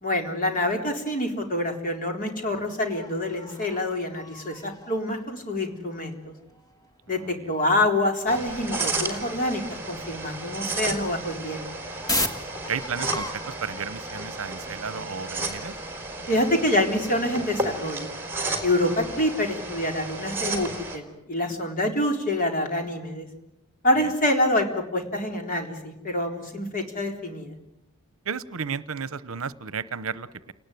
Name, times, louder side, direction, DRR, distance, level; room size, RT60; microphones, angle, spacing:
voice 1, 0.0-6.3 7.1-9.6 9.9-11.7 16.3-18.1 18.6-23.3 23.8-27.5, left 1 dB, 40° left, 3 dB, 3.9 m, -26 dB
sound 1, 2.5-9.2 9.5-9.6 9.9-18.1, left 2 dB, 15° left, 2.0 m, -39 dB
voice 2, 7.2-7.5 12.7-15.7 18.8-19.0 24.0-24.1 28.2-30.5, right 6 dB, 65° right, 17 dB, 0.9 m, -33 dB
sound 2, 8.3-21.0, right 2 dB, 10° right, 3.8 m, -33 dB
30.0 x 19.0 x 9.3 m, 0.91 s
head